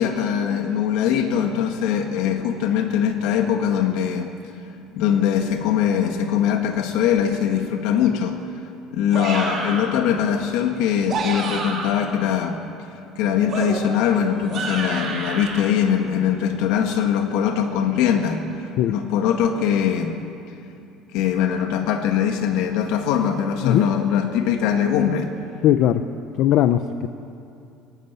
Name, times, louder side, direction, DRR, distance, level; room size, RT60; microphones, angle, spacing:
voice 1, 0.0-4.7 4.9-8.4 8.9-12.6 13.2-20.2 21.1-25.4, left 8 dB, 70° left, 5 dB, 2.0 m, -22 dB
sound 1, 9.1-10.0 10.9-12.1 13.5-15.6, right 3 dB, 35° right, 5.5 m, -29 dB
voice 2, 25.6-26.0 26.4-27.1, left 11 dB, 50° left, 10 dB, 0.6 m, -18 dB
23.5 x 18.5 x 8.4 m, 2.6 s
cardioid pair, 175°, 0 cm